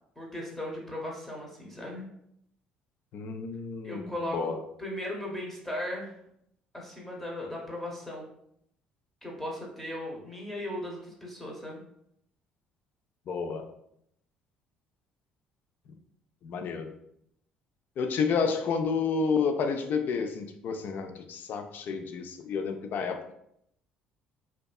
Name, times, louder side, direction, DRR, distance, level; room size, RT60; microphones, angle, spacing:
voice 1, 0.2-2.1 3.8-6.1 6.7-8.3 9.2-11.8, left 1 dB, 5° left, -2 dB, 0.7 m, -37 dB
voice 2, 3.1-4.6 13.3-13.6 16.4-16.9 18.0-23.3, left 5 dB, 50° left, 7 dB, 0.3 m, -30 dB
2.6 x 2.3 x 2.3 m, 0.74 s
hypercardioid pair, 55°, 4 cm